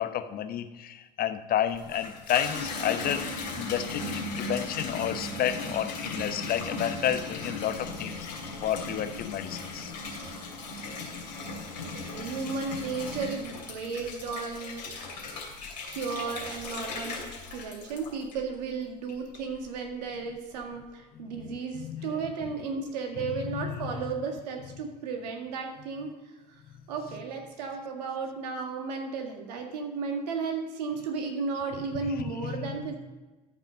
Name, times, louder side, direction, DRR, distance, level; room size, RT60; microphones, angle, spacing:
voice 1, 0.0-3.3 3.5-8.2 8.6-9.9 21.2-22.3 23.2-23.9 32.1-32.2 32.4-32.8, left 10 dB, 45° left, 10 dB, 0.9 m, -31 dB
Water tap faucet / Bathtub (filling or washing), 1.7-18.6 19.1-19.7, left 3 dB, 85° left, 2.8 m, -37 dB
voice 2, 11.9-14.9 15.9-17.2 17.5-26.1 26.9-33.0, right 5 dB, 75° right, 3 dB, 1.9 m, -34 dB
13.0 x 5.7 x 5.1 m, 1.2 s
hypercardioid pair, 70°, 21 cm